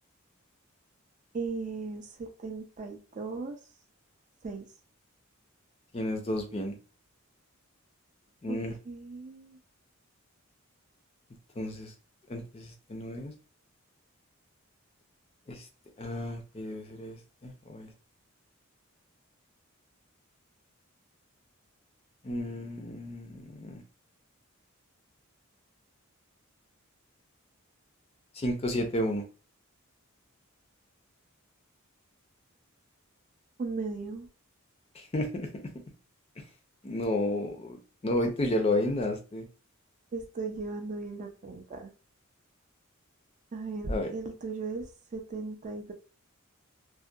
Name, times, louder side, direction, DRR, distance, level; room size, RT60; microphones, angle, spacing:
voice 1, 1.3-3.6 4.4-4.7 8.5-8.6 8.9-9.6 33.6-34.3 40.1-41.9 43.5-45.9, right 3 dB, 35° right, 5 dB, 0.3 m, -37 dB
voice 2, 5.9-6.7 8.4-8.7 11.6-11.9 12.3-13.3 15.5-15.7 16.0-17.9 22.2-23.8 28.3-29.2 35.0-35.5 36.8-37.8 38.0-39.5 43.9-44.1, left 1 dB, 30° left, 3 dB, 0.4 m, -32 dB
2.6 x 2.1 x 2.2 m, 0.34 s
head